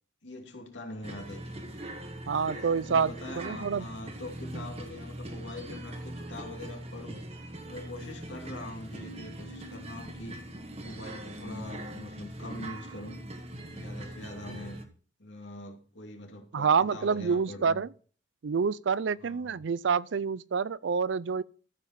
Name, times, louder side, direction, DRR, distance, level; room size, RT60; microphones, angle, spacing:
voice 1, 0.2-1.4 2.5-7.2 7.6-10.4 10.8-13.2 13.7-14.9 15.2-17.8 19.2-19.7, left 1 dB, 85° left, 2.6 m, -43 dB
sound 1, 1.0-14.8, right 1 dB, 35° right, 1.5 m, -41 dB
voice 2, 2.3-3.9 16.5-17.9 18.4-21.4, right 6 dB, 85° right, 0.5 m, -27 dB
14.0 x 5.4 x 5.8 m
head